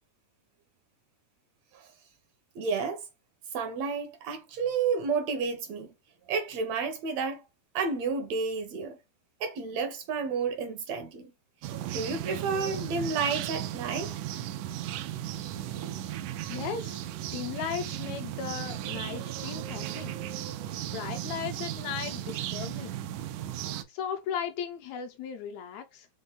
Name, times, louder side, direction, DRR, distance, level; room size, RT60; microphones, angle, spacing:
voice 1, 2.6-3.0 3.5-5.9 6.3-7.4 7.8-9.0 9.4-11.3 11.9-14.1, right 5 dB, 75° right, 1.8 m, -31 dB
sound 1, 11.6-23.8, right 12 dB, 90° right, 2.1 m, -36 dB
voice 2, 16.5-20.1 20.9-22.9 23.9-26.1, left 8 dB, 80° left, 1.7 m, -36 dB
5.3 x 2.2 x 3.6 m
omnidirectional pair, 3.5 m